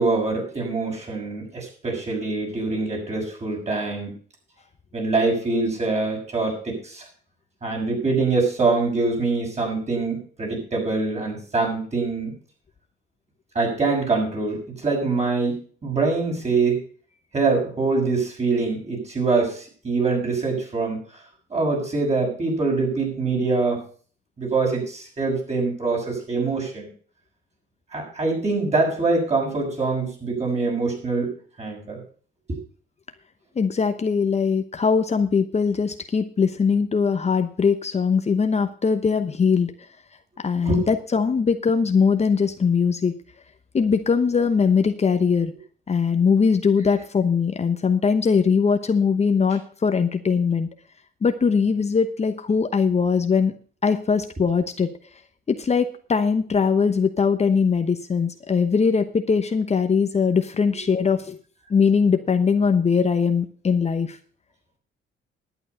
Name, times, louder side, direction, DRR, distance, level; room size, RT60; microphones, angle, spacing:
voice 1, 0.0-4.1 4.9-7.0 7.6-12.3 13.5-16.8 17.3-21.0 21.5-23.8 24.4-26.9 27.9-31.3 31.6-32.0 32.5-32.6 40.6-40.9, right 3 dB, 35° right, 0 dB, 6.6 m, -24 dB
voice 2, 33.6-39.7 40.4-43.1 43.7-45.5 45.9-50.7 51.2-53.6 53.8-54.9 55.5-61.4 61.7-64.2, left 5 dB, 35° left, 8 dB, 1.0 m, -21 dB
11.0 x 9.0 x 5.6 m, 0.43 s
cardioid pair, 90°, 20 cm